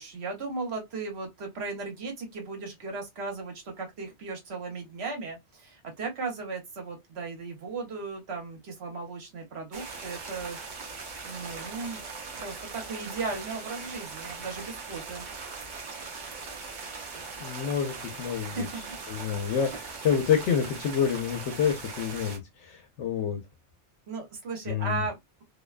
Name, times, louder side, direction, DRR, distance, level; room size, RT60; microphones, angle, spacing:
voice 1, 0.0-10.6 11.2-12.0 12.4-15.2 18.3-18.8 24.1-25.4, right 4 dB, 65° right, 1.1 m, -36 dB
sound 1, 9.7-22.4, right 4 dB, 50° right, 0.7 m, -40 dB
voice 2, 17.4-18.7 19.1-23.4 24.7-25.0, left 8 dB, 85° left, 0.9 m, -28 dB
2.6 x 2.2 x 2.3 m
omnidirectional pair, 1.2 m